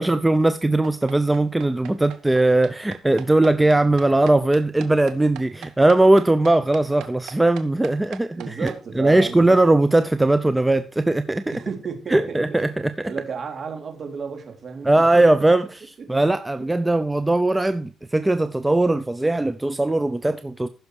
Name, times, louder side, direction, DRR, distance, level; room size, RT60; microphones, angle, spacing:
voice 1, 0.0-11.5 12.1-12.7 14.8-15.8 16.1-20.7, right 2 dB, 10° right, 0.7 m, -19 dB
sound 1, 0.8-8.8, right 11 dB, 85° right, 1.2 m, -40 dB
voice 2, 8.3-9.6 11.5-12.7 13.1-15.2 16.6-16.7, right 6 dB, 50° right, 3.4 m, -33 dB
15.0 x 6.5 x 4.8 m
cardioid pair, 90°, 0 cm